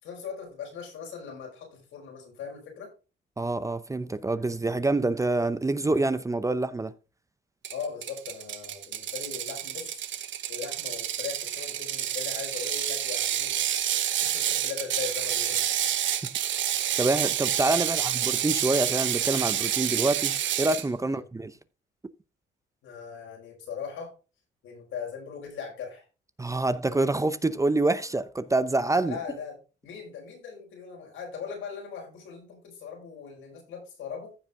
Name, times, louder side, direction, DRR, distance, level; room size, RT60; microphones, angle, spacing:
voice 1, 0.0-2.9 7.7-10.0 10.5-13.6 14.2-15.6 17.9-18.1 21.0-21.2 22.8-24.1 24.6-26.0 29.0-29.6 29.8-34.4, left 6 dB, 85° left, 5.0 m, -39 dB
voice 2, 3.4-6.9 16.2-16.3 17.0-21.5 26.4-29.2, right 2 dB, 15° right, 0.7 m, -26 dB
Ratchet pawl, 7.6-20.9, right 11 dB, 70° right, 1.0 m, -29 dB
15.0 x 5.0 x 3.6 m
cardioid pair, 90°, 20 cm